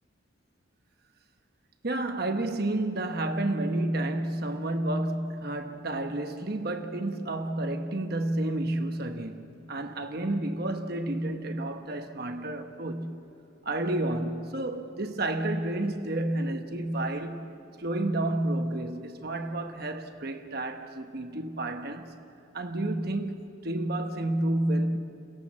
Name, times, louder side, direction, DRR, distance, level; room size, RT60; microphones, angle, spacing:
voice 1, 1.8-13.2 13.6-17.5 17.8-22.1 22.5-25.0, right 1 dB, 50° right, 1.1 m, -30 dB
29.5 x 18.0 x 7.4 m
head